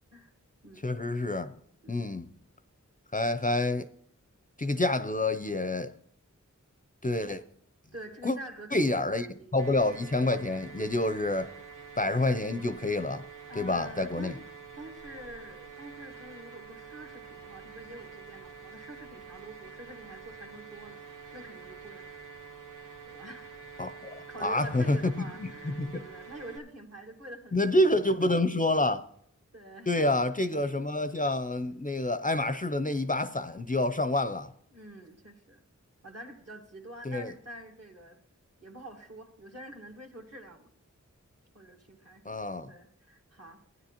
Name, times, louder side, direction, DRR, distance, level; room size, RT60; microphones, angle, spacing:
voice 1, 0.8-1.5 1.9-2.3 3.1-3.9 4.6-5.9 7.0-7.4 8.2-8.4 8.7-9.3 9.5-11.5 12.0-13.2 13.6-14.3 23.8-25.1 25.4-26.0 27.5-29.0 29.9-34.5 37.0-37.3 42.3-42.7, left 2 dB, 25° left, 0.5 m, -28 dB
voice 2, 7.9-9.6 11.5-11.7 13.5-14.5 14.7-22.1 23.0-23.5 24.3-28.5 29.5-30.8 34.7-35.6 36.0-38.2 38.6-40.7 41.5-43.6, right 1 dB, 50° right, 1.7 m, -47 dB
sound 1, 9.6-26.6, right 5 dB, 85° right, 1.4 m, -47 dB
15.5 x 9.6 x 2.9 m
wide cardioid pair, 50°, 31 cm